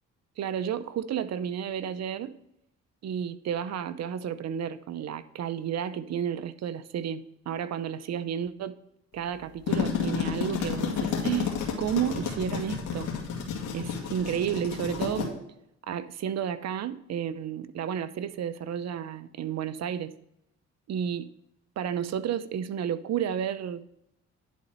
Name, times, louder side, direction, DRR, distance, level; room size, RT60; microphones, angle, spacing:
voice 1, 0.4-2.3 3.0-8.8 9.1-13.1 13.7-15.4 15.9-20.1 20.9-21.3 21.8-23.8, right 9 dB, 60° right, 13 dB, 0.7 m, -32 dB
sound 1, 9.4-15.3, left 6 dB, 85° left, 2.1 m, -31 dB
10.5 x 4.2 x 6.7 m, 0.79 s
cardioid pair, 90°, 30 cm